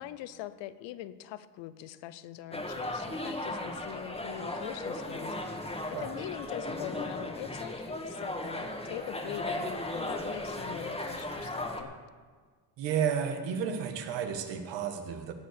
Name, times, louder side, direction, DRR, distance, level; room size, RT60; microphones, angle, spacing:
voice 1, 0.0-5.6 6.0-11.9, left 13 dB, 90° left, 15 dB, 0.7 m, -42 dB
sound 1, 2.5-11.8, left 1 dB, 15° left, 1.7 m, -36 dB
voice 2, 12.8-15.3, right 7 dB, 85° right, 7 dB, 1.5 m, -32 dB
17.5 x 6.8 x 6.6 m, 1.5 s
cardioid pair, 75°, 43 cm